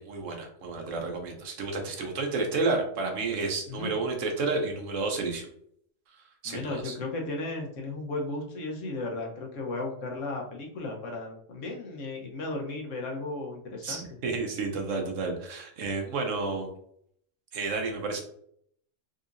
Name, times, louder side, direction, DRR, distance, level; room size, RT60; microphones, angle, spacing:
voice 1, 0.0-5.5 6.1-7.0 13.8-16.7 17.5-18.2, right 3 dB, 80° right, 3 dB, 1.1 m, -31 dB
voice 2, 6.4-14.0, left 2 dB, 80° left, 0 dB, 1.2 m, -35 dB
3.9 x 2.8 x 2.5 m, 0.67 s
omnidirectional pair, 1.3 m